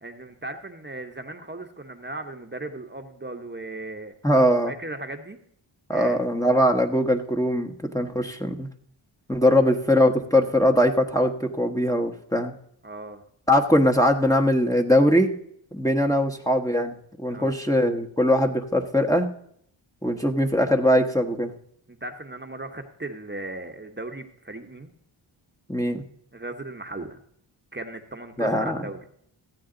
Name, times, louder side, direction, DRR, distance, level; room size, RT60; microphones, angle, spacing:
voice 1, 0.0-4.1 4.7-5.4 5.9-6.2 9.5-9.7 12.8-13.2 17.3-17.5 21.9-24.9 26.3-27.2 27.7-29.0, right 2 dB, 20° right, 5 dB, 1.1 m, -37 dB
voice 2, 4.2-4.7 5.9-8.7 9.3-12.5 13.5-15.3 15.7-19.3 20.0-21.5 25.7-26.0 28.4-28.8, equal, 5° left, 2 dB, 1.1 m, -21 dB
15.0 x 8.5 x 3.9 m, 0.67 s
cardioid pair, 55°, 50 cm